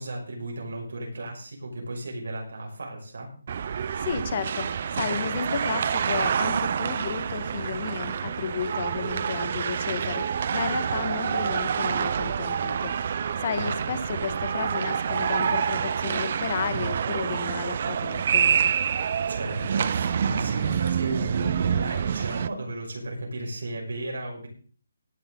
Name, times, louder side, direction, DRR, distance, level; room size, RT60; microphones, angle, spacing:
voice 1, 0.0-3.3 13.6-13.7 19.3-24.5, right 2 dB, 80° right, -1 dB, 6.2 m, -34 dB
sound 1, 3.5-22.5, right 7 dB, 40° right, 0.7 m, -27 dB
voice 2, 4.0-4.7 4.9-18.7, left 7 dB, 40° left, 11 dB, 1.6 m, -33 dB
17.5 x 11.0 x 4.0 m, 0.43 s
hypercardioid pair, 165°, 0 cm